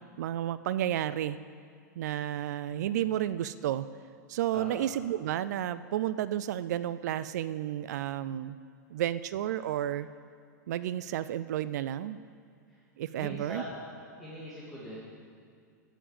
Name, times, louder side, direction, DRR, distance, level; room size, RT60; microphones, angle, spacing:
voice 1, 0.2-1.4 2.0-3.9 4.3-8.6 8.9-10.1 10.7-12.2 13.0-13.6, right 12 dB, 65° right, 15 dB, 0.4 m, -31 dB
voice 2, 4.5-4.9 12.7-12.8 13.2-13.9 14.2-15.0, equal, ahead, -9 dB, 2.6 m, -41 dB
12.5 x 7.1 x 7.4 m, 2.2 s
hypercardioid pair, 105°, 10 cm